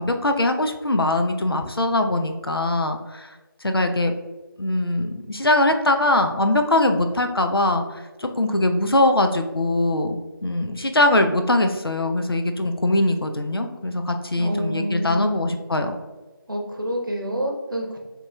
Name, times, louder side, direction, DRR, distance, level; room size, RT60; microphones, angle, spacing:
voice 1, 0.0-3.3 3.6-4.1 4.6-15.9, left 1 dB, 75° left, 5 dB, 0.6 m, -22 dB
voice 2, 14.4-15.3 16.5-18.0, equal, 60° right, 1 dB, 0.9 m, -28 dB
6.5 x 3.0 x 2.3 m, 1.2 s
figure-of-eight pair, 170°, 12 cm